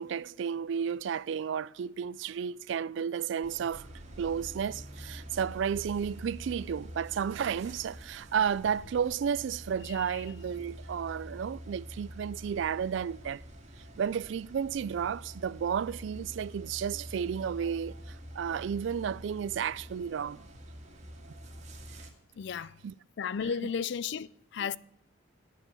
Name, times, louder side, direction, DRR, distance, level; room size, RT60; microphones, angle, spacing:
voice 1, 0.0-3.9 4.2-13.4 14.0-20.5 22.8-22.9 24.6-24.7, right 7 dB, 60° right, 0.3 m, -32 dB
sound 1, 3.4-22.1, equal, 35° right, 1.9 m, -46 dB
voice 2, 22.4-22.8 23.2-24.8, left 6 dB, 60° left, 0.4 m, -33 dB
9.2 x 8.2 x 7.0 m
head